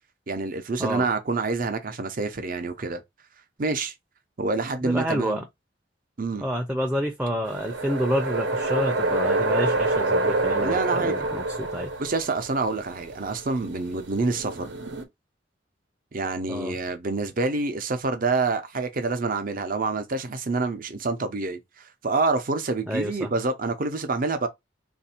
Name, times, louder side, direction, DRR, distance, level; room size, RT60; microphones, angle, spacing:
voice 1, 0.3-3.0 3.6-3.9 4.4-5.4 6.2-6.5 10.6-11.1 12.0-14.7 16.1-24.5, right 3 dB, 50° right, 0.7 m, -27 dB
voice 2, 4.8-5.4 6.4-11.9 16.5-16.8 22.9-23.3, equal, 5° right, 0.5 m, -29 dB
sound 1, 7.5-15.0, right 2 dB, 75° right, 1.0 m, -27 dB
3.3 x 2.6 x 4.2 m
head